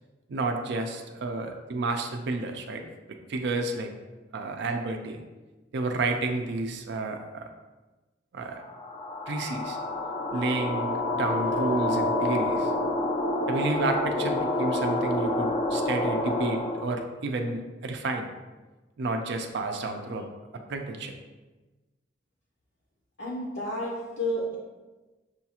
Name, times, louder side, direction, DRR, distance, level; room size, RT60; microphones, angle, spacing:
voice 1, 0.3-2.8 3.3-3.9 4.3-5.2 5.7-7.5 8.3-8.6 9.3-9.8 10.3-12.7 13.5-18.3 19.0-20.3 20.7-21.1, right 2 dB, 60° right, 4 dB, 0.4 m, -30 dB
sound 1, 8.6-17.0, left 2 dB, 25° left, 0.3 m, -28 dB
voice 2, 23.2-24.6, equal, 65° left, -4 dB, 0.7 m, -31 dB
6.2 x 2.4 x 2.8 m, 1.2 s
head